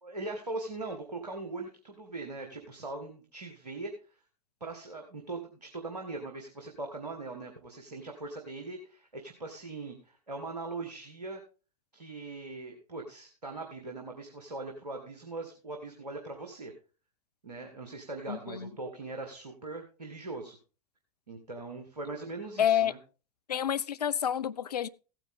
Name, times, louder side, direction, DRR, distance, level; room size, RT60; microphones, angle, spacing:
voice 1, 0.0-3.9 4.6-11.4 11.9-16.7 17.4-20.6 21.3-23.0, right 3 dB, 85° right, 1.8 m, -40 dB
voice 2, 18.3-18.7 22.6-22.9 23.5-24.9, left 9 dB, 80° left, 0.5 m, -28 dB
15.5 x 9.0 x 3.7 m
figure-of-eight pair, 80°, 20 cm